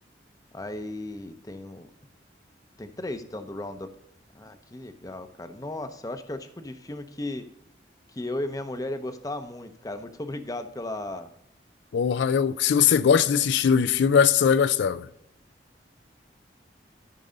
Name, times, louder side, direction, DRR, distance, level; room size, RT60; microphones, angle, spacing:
voice 1, 0.5-1.9 2.8-3.9 4.3-7.4 8.1-11.3, left 1 dB, 20° left, 0.6 m, -35 dB
voice 2, 11.9-15.1, left 7 dB, 75° left, 0.3 m, -21 dB
12.5 x 5.4 x 3.8 m
head